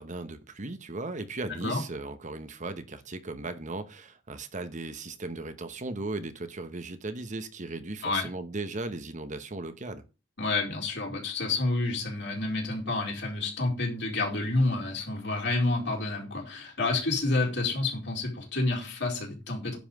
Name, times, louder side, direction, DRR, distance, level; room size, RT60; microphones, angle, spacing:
voice 1, 0.0-10.0, right 2 dB, 40° right, 1.1 m, -37 dB
voice 2, 1.5-1.8 8.0-8.3 10.4-19.8, left 2 dB, 65° left, 4.4 m, -29 dB
10.0 x 5.7 x 6.6 m
head